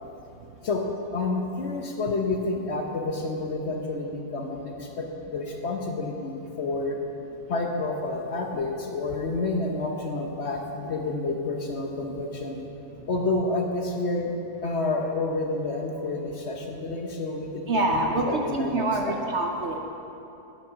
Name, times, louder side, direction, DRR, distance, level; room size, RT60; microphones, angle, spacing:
voice 1, 0.6-7.0 7.5-12.6 13.1-14.3 14.6-17.6 17.9-19.2, left 3 dB, 50° left, 2 dB, 1.1 m, -29 dB
voice 2, 17.7-19.8, right 2 dB, 55° right, 2 dB, 0.9 m, -26 dB
9.4 x 9.2 x 5.9 m, 2.9 s
omnidirectional pair, 1.6 m